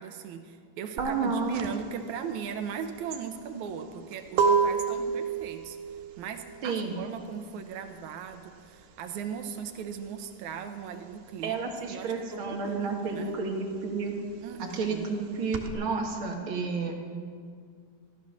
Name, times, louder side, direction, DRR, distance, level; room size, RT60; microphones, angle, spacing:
voice 1, 0.0-5.8 6.2-11.6 11.9-13.4 14.4-15.1, right 7 dB, 70° right, 7 dB, 2.0 m, -38 dB
voice 2, 1.0-1.6 6.6-7.0 11.4-14.1 14.6-16.9, right 4 dB, 50° right, 1 dB, 1.9 m, -31 dB
sound 1, 1.0-11.2 11.5-15.7, right 5 dB, 85° right, 2.8 m, -31 dB
14.5 x 14.0 x 6.3 m, 2.1 s
omnidirectional pair, 3.9 m